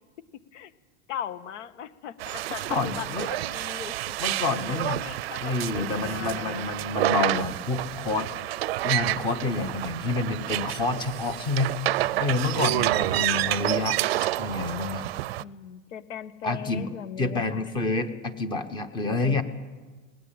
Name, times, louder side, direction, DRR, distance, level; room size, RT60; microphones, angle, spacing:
voice 1, 1.1-4.2 4.7-6.7 15.4-17.7 19.1-19.4, left 9 dB, 70° left, 12 dB, 1.6 m, -39 dB
sound 1, 2.2-15.4, right 16 dB, 55° right, 0.6 m, -29 dB
voice 2, 2.7-3.3 4.2-5.0 5.4-8.3 8.8-11.8 12.2-14.0 14.4-15.1 16.4-16.9 17.2-19.4, left 3 dB, 10° left, 11 dB, 0.9 m, -28 dB
20.0 x 19.0 x 9.0 m, 1.3 s
supercardioid pair, 175°, 37 cm